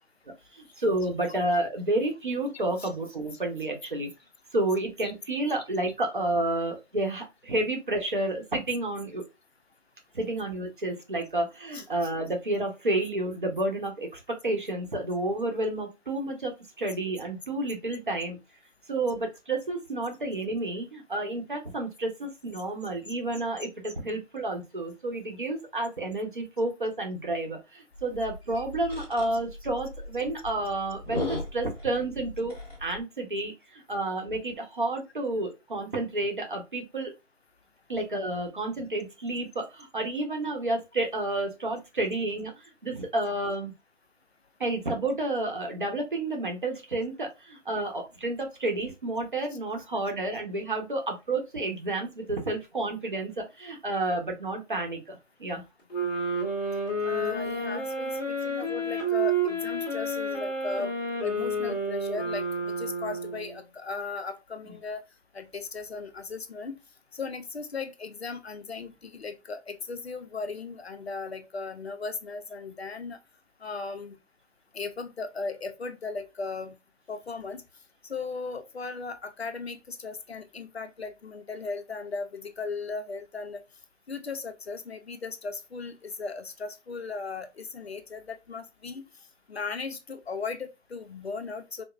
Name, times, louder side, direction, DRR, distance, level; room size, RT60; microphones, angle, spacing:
voice 1, 0.5-4.1 4.5-9.2 10.1-18.4 18.9-32.5 32.8-37.1 37.9-42.5 42.8-43.7 44.6-55.6 64.6-64.7, right 2 dB, 45° right, 0.8 m, -30 dB
sound 1, 27.9-33.0, left 1 dB, 10° left, 0.8 m, -38 dB
sound 2, 55.9-63.6, right 1 dB, 35° left, 1.3 m, -30 dB
voice 2, 57.0-60.9 61.2-65.0 65.3-66.8 67.1-73.2 73.6-74.2 74.7-76.8 77.1-77.6 78.1-83.6 84.1-89.0 89.5-91.8, left 4 dB, 60° left, 0.6 m, -37 dB
4.9 x 2.0 x 2.3 m
figure-of-eight pair, 170°, 37 cm